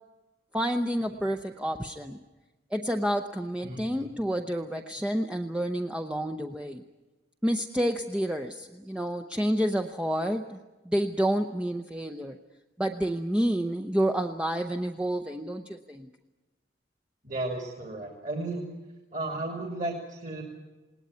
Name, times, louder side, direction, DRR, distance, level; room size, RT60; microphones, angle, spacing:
voice 1, 0.5-2.2 2.7-6.8 7.4-10.6 10.9-12.4 12.8-16.1, equal, 5° right, 5 dB, 0.7 m, -29 dB
voice 2, 3.6-4.2 17.2-18.7 19.1-20.4, right 2 dB, 40° right, 2 dB, 2.6 m, -34 dB
20.0 x 18.5 x 9.6 m, 1.1 s
head